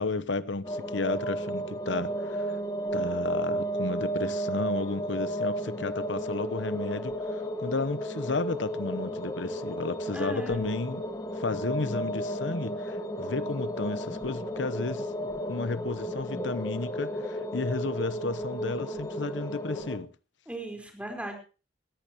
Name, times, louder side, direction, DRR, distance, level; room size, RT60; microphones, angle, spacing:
voice 1, 0.0-2.6 2.9-11.0 11.3-15.1 15.5-20.1, left 3 dB, 80° left, 0.9 m, -33 dB
sound 1, 0.6-20.0, equal, 20° left, 1.5 m, -33 dB
voice 2, 10.1-10.6 20.5-21.4, right 1 dB, 5° right, 4.6 m, -37 dB
20.5 x 14.5 x 3.1 m
head